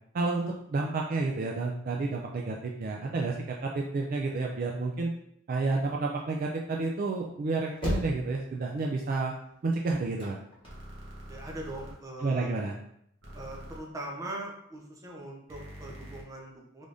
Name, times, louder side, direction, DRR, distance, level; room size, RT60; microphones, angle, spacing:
voice 1, 0.1-5.1 5.5-9.3 9.6-10.4 12.2-12.7, right 3 dB, 45° right, 0 dB, 0.3 m, -30 dB
sound 1, 7.2-11.4 11.9-12.8, left 1 dB, 25° left, 1.2 m, -37 dB
sound 2, 10.6-11.9 13.2-13.8 15.5-16.2, equal, 65° right, 1.0 m, -45 dB
voice 2, 11.3-12.5 13.3-16.8, right 1 dB, 15° right, -2 dB, 0.7 m, -41 dB
3.5 x 3.4 x 2.5 m, 0.72 s
head